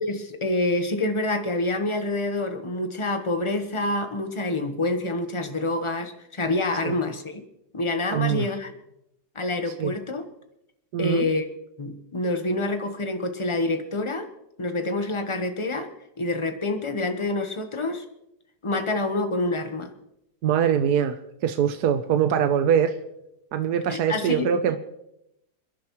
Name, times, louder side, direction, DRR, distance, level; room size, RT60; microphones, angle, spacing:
voice 1, 0.0-7.4 7.7-8.7 9.3-10.2 11.0-11.5 11.8-14.3 14.6-15.9 16.2-18.0 18.6-19.9 23.9-24.5, left 2 dB, 20° left, 7 dB, 1.0 m, -27 dB
voice 2, 8.1-8.5 9.8-9.9 10.9-11.3 20.4-21.2 21.4-23.0 23.5-24.8, right 8 dB, 75° right, 8 dB, 1.3 m, -23 dB
28.5 x 10.5 x 3.1 m, 0.84 s
omnidirectional pair, 1.7 m